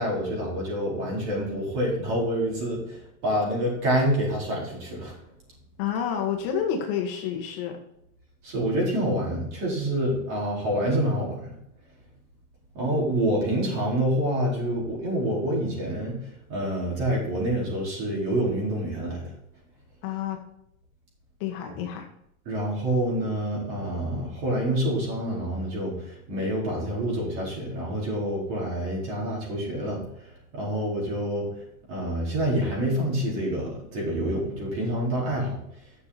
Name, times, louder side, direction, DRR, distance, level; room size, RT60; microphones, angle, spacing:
voice 1, 0.0-5.2 8.4-11.5 12.7-16.2 16.5-19.2 22.5-30.0 30.5-31.5 31.9-35.6, right 1 dB, 40° right, -3 dB, 4.4 m, -27 dB
voice 2, 5.8-7.8 20.0-20.4 21.4-22.0, left 8 dB, 40° left, 2 dB, 1.4 m, -29 dB
10.5 x 6.8 x 4.2 m, 0.75 s
supercardioid pair, 165°, 43 cm